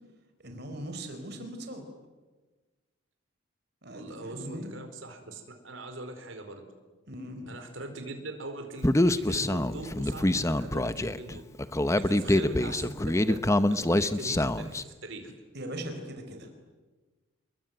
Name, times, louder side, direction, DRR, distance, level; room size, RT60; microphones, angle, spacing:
voice 1, 0.4-1.8 3.8-4.7 7.1-7.6 12.0-12.3 15.5-16.5, right 1 dB, 55° right, 6 dB, 4.4 m, -40 dB
voice 2, 3.9-6.7 7.5-11.4 11.9-12.9 13.3-13.4 13.7-15.3, right 2 dB, 70° right, 5 dB, 4.6 m, -41 dB
Human voice, 8.8-14.8, left 1 dB, 15° left, 0.9 m, -25 dB
28.5 x 22.0 x 9.3 m, 1.3 s
head